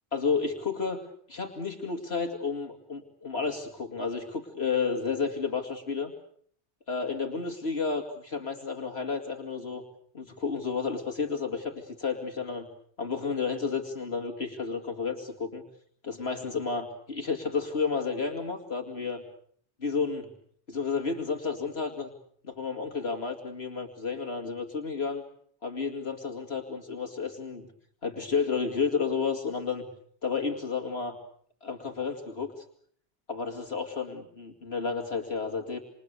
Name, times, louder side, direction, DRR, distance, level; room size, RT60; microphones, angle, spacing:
voice 1, 0.1-1.0 1.3-6.1 6.9-9.8 10.1-12.7 13.0-15.6 16.0-19.2 19.8-20.3 20.7-22.1 22.4-25.2 25.6-27.7 28.0-29.9 30.2-31.2 31.6-32.5 33.3-35.8, left 5 dB, 65° left, 3 dB, 2.6 m, -31 dB
28.0 x 27.5 x 6.8 m, 0.63 s
omnidirectional pair, 1.1 m